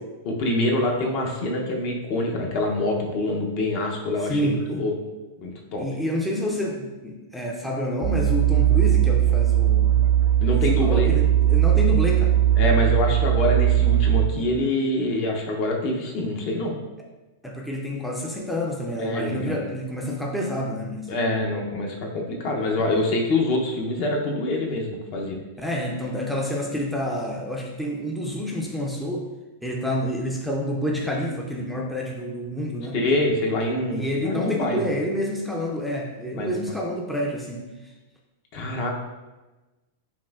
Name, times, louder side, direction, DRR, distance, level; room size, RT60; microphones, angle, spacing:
voice 1, 0.2-4.9 5.4-5.9 10.4-11.1 12.6-16.8 19.0-19.6 21.1-25.4 32.9-34.8 36.3-36.7 38.5-38.9, left 2 dB, 45° left, 1 dB, 0.7 m, -25 dB
voice 2, 4.2-4.7 5.8-10.0 10.5-12.3 17.4-21.1 22.8-23.0 25.6-29.3 29.6-33.0 33.9-37.9, equal, ahead, -2 dB, 0.4 m, -28 dB
sound 1, 8.0-14.3, right 11 dB, 65° right, 0.4 m, -19 dB
5.3 x 2.6 x 2.4 m, 1.1 s
supercardioid pair, 140°, 0 cm